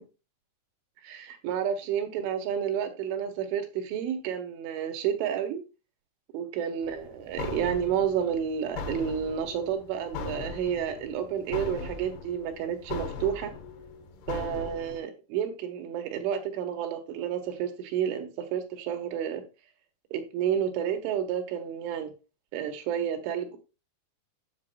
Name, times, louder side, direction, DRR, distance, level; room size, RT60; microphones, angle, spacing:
voice 1, 1.0-5.6 6.3-13.5 14.3-19.4 20.1-22.1 22.5-23.6, right 8 dB, 80° right, 3.9 m, -30 dB
sound 1, 6.8-15.0, left 4 dB, 65° left, 3.4 m, -39 dB
9.5 x 7.4 x 2.4 m
omnidirectional pair, 5.4 m